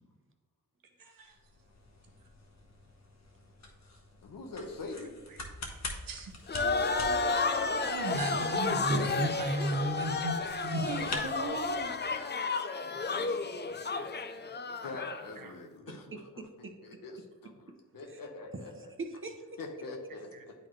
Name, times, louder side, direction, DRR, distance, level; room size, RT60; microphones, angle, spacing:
sound 1, 1.3-12.0, left 2 dB, 55° left, 1.2 m, -46 dB
voice 1, 4.2-5.2 13.1-13.5 14.8-18.9 19.6-20.5, left 3 dB, 85° left, 3 dB, 1.0 m, -44 dB
sound 2, 6.5-15.3, left 4 dB, 30° left, 0.5 m, -32 dB
voice 2, 7.8-10.4 10.6-11.2, right 1 dB, 80° right, 4 dB, 0.9 m, -33 dB
voice 3, 10.9-11.9 15.9-16.7 18.1-18.2 18.7-19.6, right 3 dB, 40° right, 6 dB, 0.8 m, -40 dB
9.3 x 4.0 x 3.1 m, 1.3 s
cardioid pair, 60°, 33 cm